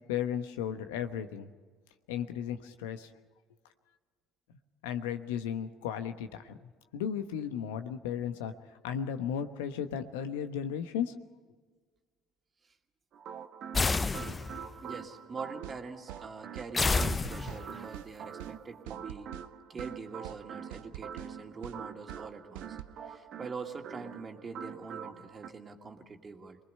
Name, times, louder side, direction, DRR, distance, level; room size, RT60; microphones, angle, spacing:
voice 1, 0.1-1.5 2.1-3.1 4.8-8.5 8.8-11.1, left 8 dB, 80° left, 8 dB, 1.1 m, -35 dB
sound 1, 13.1-25.5, right 8 dB, 60° right, 1.4 m, -45 dB
sound 2, 13.7-14.8 16.7-17.8, left 3 dB, 25° left, 0.7 m, -29 dB
voice 2, 14.8-19.3 19.7-22.8 23.0-26.6, right 4 dB, 35° right, 3 dB, 2.3 m, -44 dB
sound 3, 15.6-15.8 16.1-16.3 16.6-16.7 17.0-17.6 17.9-18.1 18.4-18.6 18.9-19.5 19.8-19.9 20.2-20.4 20.7-21.3 21.6-21.8 22.1-22.3 22.6-22.9, right 15 dB, 75° right, 0.6 m, -45 dB
26.5 x 20.5 x 5.6 m, 1.4 s
hypercardioid pair, 60°, 0 cm